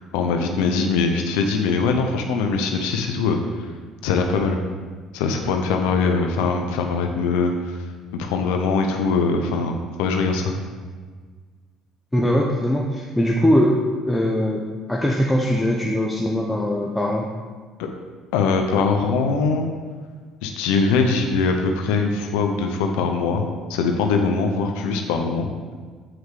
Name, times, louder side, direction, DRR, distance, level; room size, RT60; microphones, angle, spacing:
voice 1, 0.0-3.7 4.0-4.6 5.1-7.8 8.1-10.5 17.8-17.9 18.3-19.7 20.4-23.4 23.7-25.5, left 4 dB, 85° left, 4 dB, 0.8 m, -22 dB
voice 2, 12.1-14.6 14.9-17.3, equal, 5° left, -2 dB, 0.9 m, -21 dB
7.8 x 4.8 x 6.5 m, 1.5 s
supercardioid pair, 90°, 0 cm